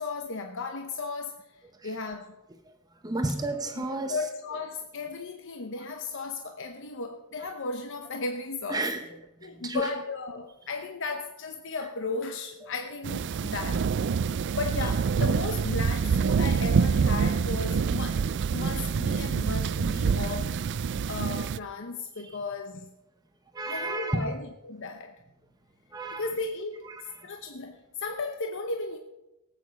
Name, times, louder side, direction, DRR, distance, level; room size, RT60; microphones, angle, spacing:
voice 1, 0.0-1.5 1.8-2.4 3.8-8.9 9.4-13.9 14.5-18.2 18.5-20.6 21.1-22.9 23.6-25.1 26.1-26.9 27.2-29.0, left 3 dB, 60° left, 0.8 m, -35 dB
voice 2, 3.0-4.2 7.4-7.5 8.7-9.1 9.4-9.9 14.8-14.9 19.1-19.3 22.2-22.4 23.5-24.3 25.9-26.3 26.9-27.3, right 2 dB, 15° right, 0.9 m, -32 dB
sound 1, 13.0-21.6, right 6 dB, 55° right, 0.4 m, -26 dB
18.0 x 8.4 x 5.3 m
head